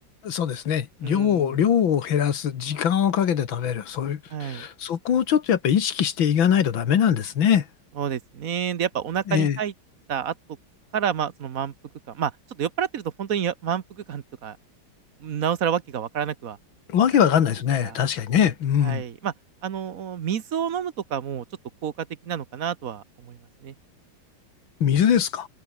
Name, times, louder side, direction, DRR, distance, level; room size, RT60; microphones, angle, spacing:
voice 1, 0.2-7.7 9.3-9.6 16.9-19.0 24.8-25.5, left 8 dB, 90° left, 2.3 m, -22 dB
voice 2, 1.0-1.7 4.3-4.7 8.0-9.7 10.1-10.3 10.9-11.7 12.1-14.6 15.2-16.6 17.8-18.0 18.8-19.3 19.6-21.4 21.8-23.7, right 8 dB, 50° right, 1.3 m, -29 dB
omnidirectional pair, 2.1 m